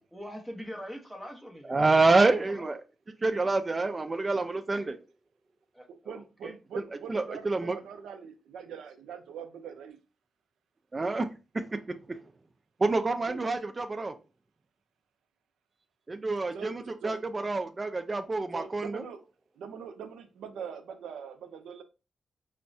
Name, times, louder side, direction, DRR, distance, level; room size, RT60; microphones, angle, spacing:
voice 1, 0.1-1.8 2.2-2.7 4.7-4.9 5.7-6.5, equal, ahead, 0.9 m, -42 dB
voice 2, 1.7-2.8 3.2-5.0 7.1-7.8 10.9-11.3 11.7-11.8 12.1-12.2 12.8-14.1 16.1-19.0, right 3 dB, 25° right, 0.3 m, -27 dB
voice 3, 5.9-10.0 13.3-13.5 16.5-17.2 18.5-19.2 19.6-21.8, right 7 dB, 90° right, 0.5 m, -43 dB
4.4 x 2.1 x 2.5 m
cardioid pair, 100°, 0 cm